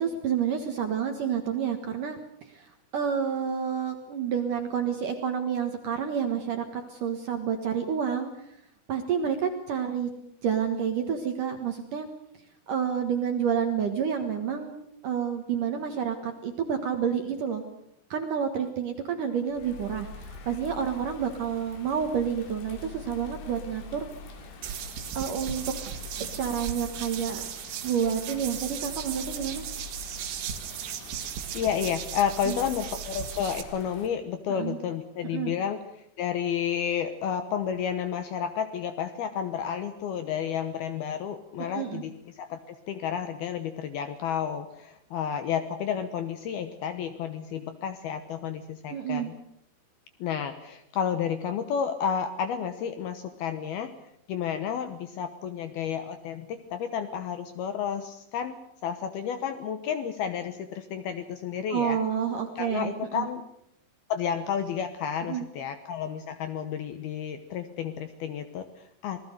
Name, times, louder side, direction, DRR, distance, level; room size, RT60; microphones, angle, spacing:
voice 1, 0.0-2.2 2.5-8.3 8.9-10.1 10.4-12.1 12.7-17.6 18.1-24.1 25.2-25.6 26.4-27.4 27.8-29.6 32.4-32.6 34.5-34.8 35.2-35.5 41.6-42.0 48.9-49.3 61.7-63.3 65.3-65.4, right 7 dB, 60° right, 6 dB, 2.3 m, -29 dB
Bird vocalization bird call bird song / Rain, 19.4-34.1, left 3 dB, 90° left, 5.4 m, -44 dB
sound 1, 24.6-33.6, right 10 dB, 85° right, 4.5 m, -37 dB
voice 2, 31.5-35.8 36.2-49.3 50.2-53.9 54.3-58.6 58.8-62.0 62.6-63.4 64.1-69.3, left 8 dB, 70° left, 9 dB, 2.5 m, -31 dB
26.5 x 19.0 x 6.6 m, 0.73 s
omnidirectional pair, 5.6 m